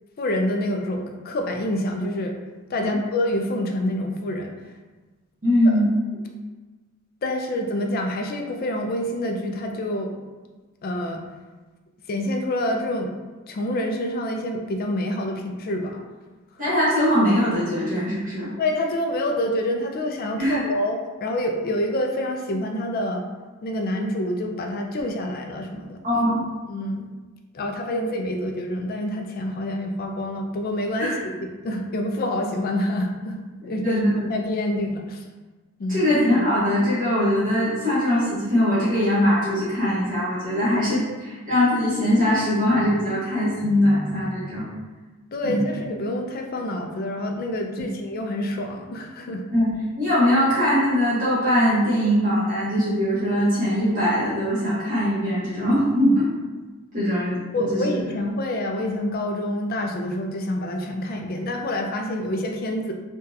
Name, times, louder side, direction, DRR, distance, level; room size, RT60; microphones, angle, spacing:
voice 1, 0.2-2.4 2.7-4.5 5.6-5.8 7.2-10.2 10.8-11.2 12.1-13.1 13.5-16.0 18.6-23.3 23.6-26.0 26.7-27.1 27.5-33.4 33.7-34.0 34.3-35.2 35.8-36.1 45.3-49.5 57.5-62.9, left 1 dB, 40° left, 3 dB, 0.3 m, -27 dB
voice 2, 5.4-5.9 16.6-18.5 20.4-20.6 26.0-26.4 31.0-31.1 33.8-34.1 35.9-44.7 45.4-45.6 49.5-56.3 56.9-57.4 57.7-57.9, equal, 35° right, -10 dB, 1.0 m, -21 dB
3.8 x 2.3 x 2.6 m, 1.3 s
head